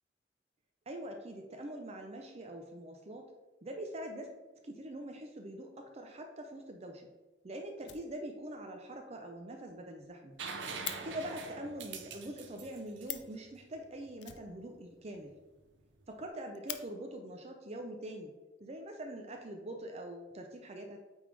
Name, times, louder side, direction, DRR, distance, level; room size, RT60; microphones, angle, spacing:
voice 1, 0.9-3.2 3.6-4.3 4.5-7.1 7.4-10.4 11.0-15.3 16.1-18.3 18.6-21.0, right 1 dB, 35° right, 4 dB, 0.6 m, -44 dB
Fire, 6.6-6.7 7.1-7.2 7.4-7.5 7.8-8.6 8.9-9.0 9.3-9.4 9.7-9.8 10.0-11.0 12.7-12.8 13.0-13.4 14.2-15.1 15.4-15.5 15.8-15.9 16.3-16.8 17.8-17.9 18.6-19.2, left 12 dB, 65° left, 0.5 m, -45 dB
sound 1, 10.4-14.1 16.0-16.1, right 4 dB, 85° right, 0.7 m, -44 dB
8.5 x 3.5 x 3.4 m, 1.2 s
head